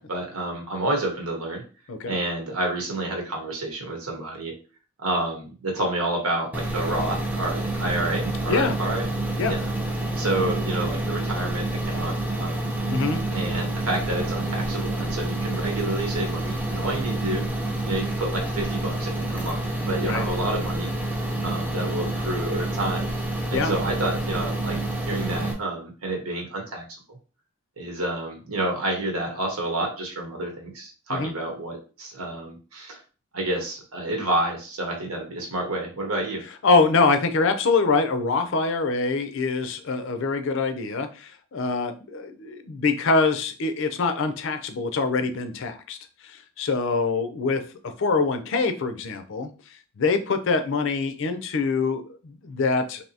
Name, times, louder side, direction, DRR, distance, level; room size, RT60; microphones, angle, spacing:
voice 1, 0.1-1.6 2.1-4.5 5.0-9.1 9.5-9.6 10.2-12.7 13.3-17.4 17.8-19.6 19.9-20.9 21.4-23.1 23.5-24.8 25.0-26.8 27.8-33.0 33.3-36.4, right 1 dB, 85° right, 1 dB, 1.0 m, -29 dB
voice 2, 1.9-2.2 8.5-8.7 9.4-9.5 12.9-13.2 20.0-20.3 23.5-23.7 31.1-31.3 36.6-46.0 46.2-47.6 48.0-49.5 50.0-53.0, left 4 dB, 60° left, 8 dB, 0.5 m, -24 dB
sound 1, 6.5-25.5, right 1 dB, 5° right, 0.5 m, -28 dB
3.4 x 2.7 x 2.7 m, 0.36 s
head